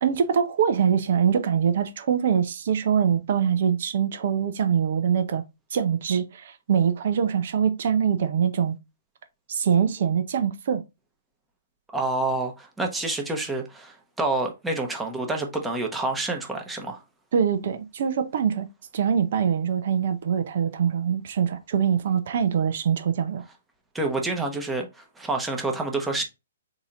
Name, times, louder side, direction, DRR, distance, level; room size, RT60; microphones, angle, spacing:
voice 1, 0.0-5.4 5.7-8.8 9.5-10.8 17.3-18.7 18.9-23.4, right 7 dB, 55° right, 0.6 m, -23 dB
voice 2, 11.9-17.0 23.9-26.2, right 2 dB, 10° right, 0.9 m, -28 dB
4.0 x 2.7 x 3.7 m
figure-of-eight pair, 125°, 0 cm